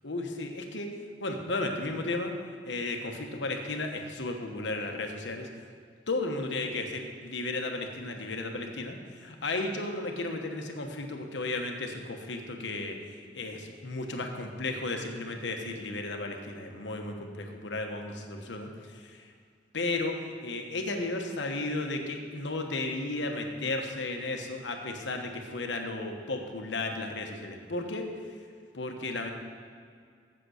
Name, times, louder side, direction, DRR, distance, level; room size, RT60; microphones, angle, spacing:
voice 1, 0.0-0.9 1.2-2.3 2.7-5.5 6.1-19.3 19.7-28.1 28.7-29.3, left 2 dB, 75° left, 3 dB, 1.1 m, -34 dB
7.9 x 7.6 x 6.4 m, 2.2 s
head